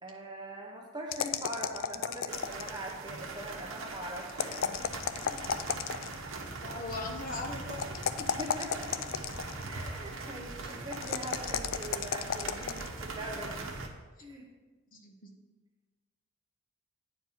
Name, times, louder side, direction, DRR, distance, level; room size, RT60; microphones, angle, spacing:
voice 1, 0.0-4.8 5.2-5.5 8.2-9.1 9.6-13.7 14.2-14.5, right 1 dB, 20° right, -1 dB, 1.0 m, -42 dB
sound 1, 1.1-2.9 4.3-6.2 7.8-9.6 10.9-12.9, left 7 dB, 70° left, 0.4 m, -33 dB
sound 2, 2.3-13.9, right 3 dB, 65° right, 1.1 m, -41 dB
voice 2, 6.6-8.1 10.6-10.8 14.9-15.3, left 2 dB, 40° left, 2 dB, 1.1 m, -40 dB
9.1 x 4.7 x 5.7 m, 1.3 s
head